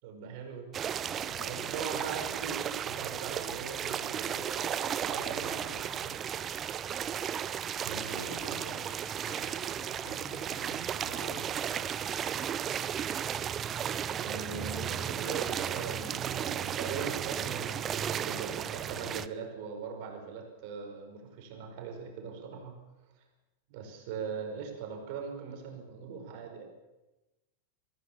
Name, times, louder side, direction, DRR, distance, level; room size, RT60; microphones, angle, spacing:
voice 1, 0.0-0.8 1.5-5.7 6.0-6.2 7.8-8.2 14.2-22.8 23.7-26.7, right 6 dB, 45° right, 3 dB, 5.3 m, -40 dB
sound 1, 0.7-19.3, right 9 dB, 25° right, 0.8 m, -34 dB
voice 2, 1.0-1.9 5.1-5.9 7.9-11.8, left 1 dB, 85° left, 3 dB, 4.9 m, -48 dB
23.5 x 16.0 x 7.3 m, 1.1 s
figure-of-eight pair, 90°, 0 cm